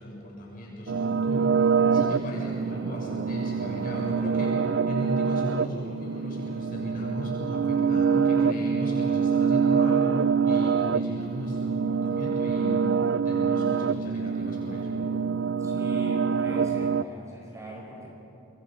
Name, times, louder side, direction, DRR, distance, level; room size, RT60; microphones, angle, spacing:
voice 1, 0.0-15.0, equal, 50° left, -3 dB, 7.0 m, -36 dB
sound 1, 0.9-17.0, right 6 dB, 70° right, 0.4 m, -25 dB
voice 2, 15.6-18.1, right 1 dB, 15° right, -2 dB, 4.8 m, -42 dB
26.0 x 22.0 x 5.5 m, 2.8 s
head